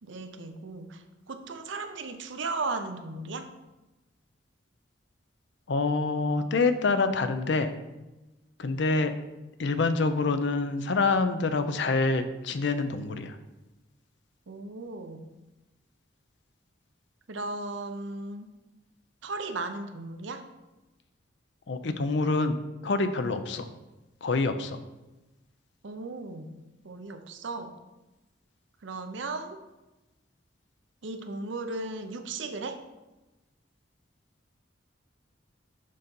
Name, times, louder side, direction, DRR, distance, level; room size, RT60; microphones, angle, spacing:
voice 1, 0.0-3.5 14.5-15.3 17.3-18.5 19.2-20.5 25.8-26.6 26.8-27.8 28.8-29.6 31.0-32.8, right 3 dB, 70° right, 7 dB, 0.6 m, -36 dB
voice 2, 5.7-7.7 8.6-9.1 9.6-13.4 21.7-22.6 22.8-23.7 24.2-24.8, left 3 dB, 65° left, 9 dB, 0.5 m, -26 dB
6.6 x 3.9 x 5.3 m, 1.1 s
head